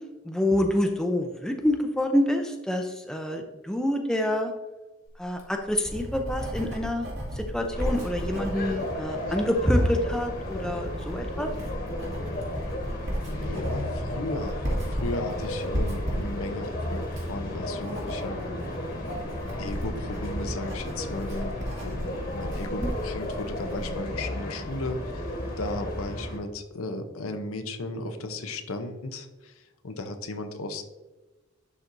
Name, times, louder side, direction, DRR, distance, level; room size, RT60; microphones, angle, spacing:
voice 1, 0.2-4.5 5.2-7.1 7.4-11.5 22.8-22.9, left 1 dB, 5° left, 4 dB, 0.5 m, -27 dB
Writing, 5.2-24.0, equal, 60° right, 2.0 m, -35 dB
sound 1, 7.7-26.4, left 1 dB, 45° left, 1.3 m, -34 dB
voice 2, 13.3-18.4 19.6-30.9, left 2 dB, 85° left, 7 dB, 0.7 m, -36 dB
11.0 x 4.2 x 2.6 m, 1.1 s
head